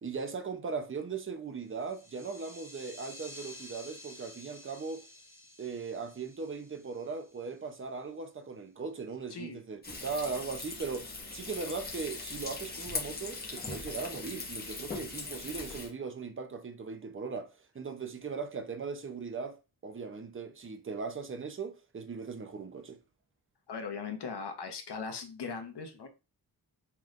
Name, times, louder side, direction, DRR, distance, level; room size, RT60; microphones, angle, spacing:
voice 1, 0.0-5.0 5.6-23.0, right 5 dB, 30° right, 0.7 m, -39 dB
sound 1, 1.7-7.7, left 1 dB, 5° right, 1.6 m, -51 dB
voice 2, 9.3-9.6 23.7-26.1, left 5 dB, 85° left, 1.0 m, -39 dB
Frying (food), 9.8-15.9, left 3 dB, 25° left, 1.0 m, -40 dB
5.8 x 3.2 x 2.5 m
wide cardioid pair, 135°, 39 cm